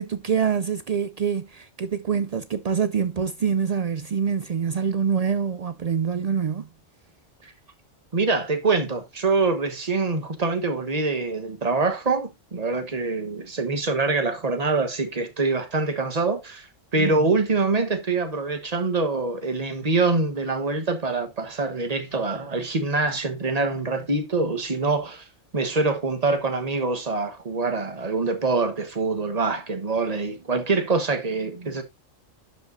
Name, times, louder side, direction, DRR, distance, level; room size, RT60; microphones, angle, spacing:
voice 1, 0.0-6.7 17.0-17.3, right 7 dB, 85° right, 0.3 m, -25 dB
voice 2, 8.1-25.3 25.5-31.8, right 3 dB, 30° right, 1.3 m, -25 dB
11.5 x 5.2 x 2.6 m
omnidirectional pair, 1.3 m